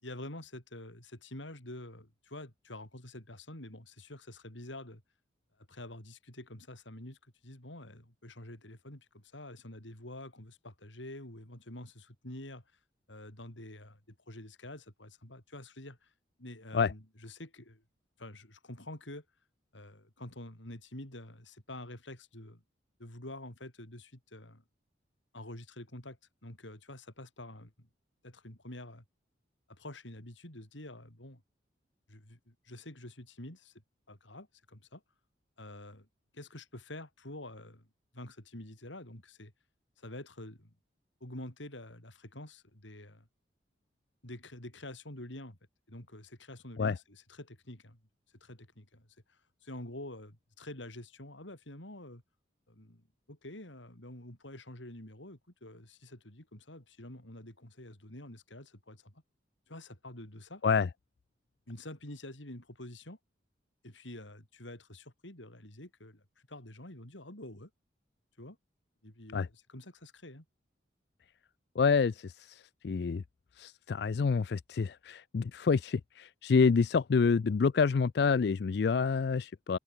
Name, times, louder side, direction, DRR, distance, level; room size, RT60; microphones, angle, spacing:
voice 1, 0.0-5.0 5.7-7.2 7.4-12.6 13.1-16.1 16.4-17.8 18.2-19.2 19.7-22.6 23.0-24.6 25.3-27.9 28.2-29.0 29.7-31.4 32.1-33.7 34.1-35.0 35.6-36.1 36.3-37.9 38.1-39.5 40.0-40.7 41.2-43.3 44.2-45.6 45.9-48.0 48.4-52.2 52.7-59.2 59.7-60.6 61.7-63.2 63.8-66.2 66.5-67.7 68.4-68.6 69.0-70.5, left 1 dB, 80° left, 5.5 m, -47 dB
voice 2, 71.8-73.2 73.6-79.8, left 5 dB, 60° left, 0.4 m, -28 dB
head